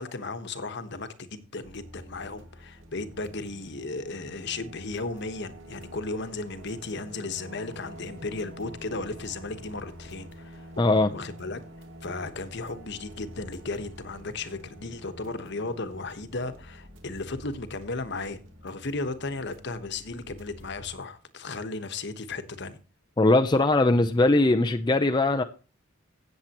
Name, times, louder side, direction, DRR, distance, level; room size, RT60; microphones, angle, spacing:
voice 1, 0.0-10.6 11.1-11.6 12.0-22.8, left 3 dB, 60° left, 1.2 m, -35 dB
sound 1, 1.6-20.9, equal, 65° right, 2.3 m, -47 dB
voice 2, 10.8-11.1 23.2-25.4, left 2 dB, 20° left, 0.5 m, -21 dB
16.5 x 7.4 x 3.0 m
head